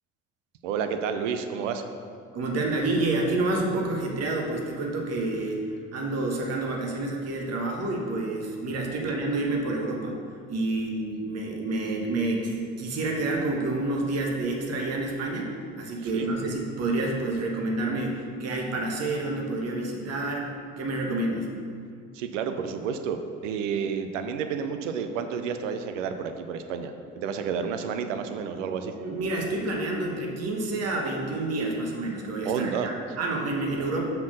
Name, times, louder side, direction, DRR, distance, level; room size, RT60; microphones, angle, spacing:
voice 1, 0.6-1.8 9.0-9.1 16.1-16.3 22.1-28.9 32.4-32.9, right 6 dB, 75° right, 7 dB, 0.6 m, -30 dB
voice 2, 2.3-10.2 10.5-21.5 28.8-34.0, right 2 dB, 40° right, 0 dB, 1.3 m, -29 dB
5.7 x 4.6 x 6.3 m, 2.2 s
figure-of-eight pair, 60°, 38 cm